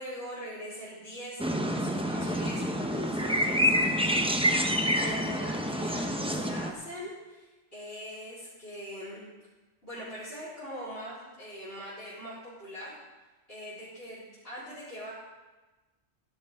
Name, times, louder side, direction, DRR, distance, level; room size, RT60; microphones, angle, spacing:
voice 1, 0.0-1.4 1.7-4.4 5.0-9.3 9.8-13.0 13.5-15.1, equal, 50° left, -11 dB, 4.3 m, -41 dB
sound 1, 1.4-6.7, equal, 5° right, 0.7 m, -27 dB
17.5 x 11.5 x 3.6 m, 1.2 s
omnidirectional pair, 1.3 m